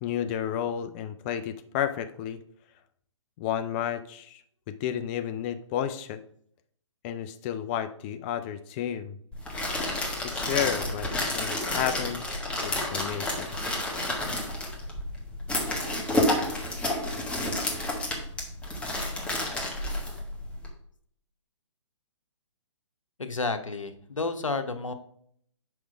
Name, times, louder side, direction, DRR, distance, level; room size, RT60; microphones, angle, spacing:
voice 1, 0.0-2.4 3.4-4.4 4.7-6.2 7.0-9.2 10.2-13.5, left 10 dB, 20° left, 9 dB, 0.3 m, -32 dB
sound 1, 9.3-20.7, left 1 dB, 5° left, 1.3 m, -30 dB
voice 2, 23.2-24.9, left 3 dB, 90° left, 8 dB, 1.0 m, -31 dB
6.0 x 5.0 x 4.9 m, 0.64 s
figure-of-eight pair, 135°, 16 cm